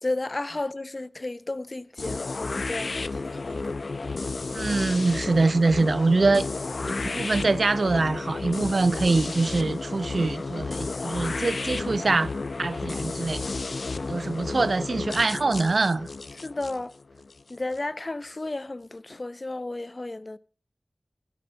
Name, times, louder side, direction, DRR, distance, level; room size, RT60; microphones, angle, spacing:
voice 1, 0.0-3.7 14.2-14.3 16.4-16.9 17.5-20.4, left 2 dB, 50° left, 0.9 m, -33 dB
sound 1, 2.0-17.8, left 3 dB, 85° left, 0.8 m, -32 dB
voice 2, 4.5-6.5 6.8-12.3 12.6-13.5 14.1-16.1, right 3 dB, 80° right, 0.6 m, -24 dB
16.0 x 11.0 x 4.7 m
wide cardioid pair, 55°, 0 cm